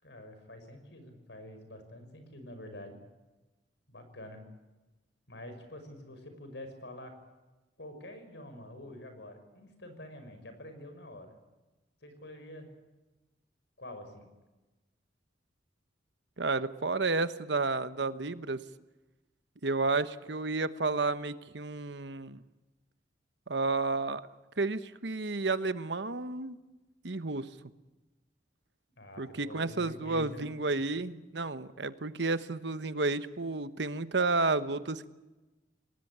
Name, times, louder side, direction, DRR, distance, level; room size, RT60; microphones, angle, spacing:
voice 1, 0.0-3.0 3.9-4.4 5.3-7.1 7.8-11.3 12.0-12.7 13.8-14.3 29.0-30.5, left 1 dB, 70° left, 8 dB, 5.8 m, -47 dB
voice 2, 16.4-18.6 19.6-22.4 23.5-24.2 24.6-26.6 27.0-27.5 29.2-35.1, right 3 dB, 70° right, 12 dB, 1.1 m, -31 dB
27.5 x 19.0 x 8.8 m, 1.1 s
head